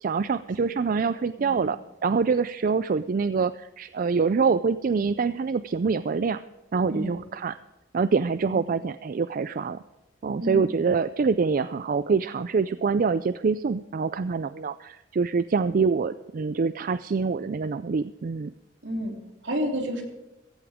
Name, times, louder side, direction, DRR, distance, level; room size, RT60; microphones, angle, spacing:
voice 1, 0.0-1.8 2.0-6.4 6.7-7.6 7.9-9.8 10.2-18.5, right 5 dB, 50° right, 14 dB, 0.4 m, -25 dB
voice 2, 1.4-1.7 6.8-7.2 8.4-8.7 10.4-10.7 18.8-19.2 19.4-20.0, equal, 75° right, 1 dB, 3.3 m, -31 dB
16.0 x 15.5 x 3.6 m, 1.0 s
head